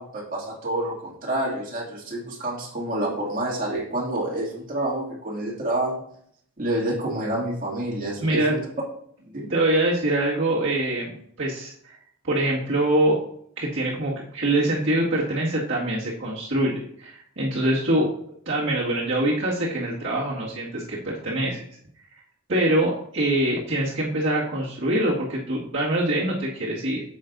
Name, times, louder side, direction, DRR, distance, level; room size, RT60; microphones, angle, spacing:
voice 1, 0.0-6.0 6.6-8.6 9.3-9.5, right 1 dB, 40° right, -4 dB, 2.3 m, -28 dB
voice 2, 8.2-8.6 9.5-12.0 12.2-13.3 13.6-18.1 18.5-21.6 22.5-27.0, right 1 dB, 60° right, -6 dB, 2.0 m, -24 dB
9.4 x 7.2 x 2.6 m, 0.66 s
head